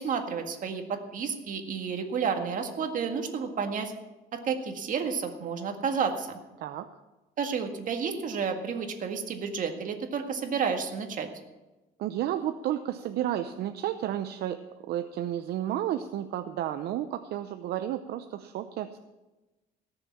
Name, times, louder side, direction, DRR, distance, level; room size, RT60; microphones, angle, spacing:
voice 1, 0.0-3.9 4.3-6.4 7.4-11.3, right 6 dB, 50° right, 5 dB, 1.9 m, -31 dB
voice 2, 6.6-6.9 12.0-19.0, right 11 dB, 70° right, 9 dB, 0.7 m, -32 dB
17.5 x 6.8 x 7.4 m, 1.1 s
cardioid pair, 110°, 17 cm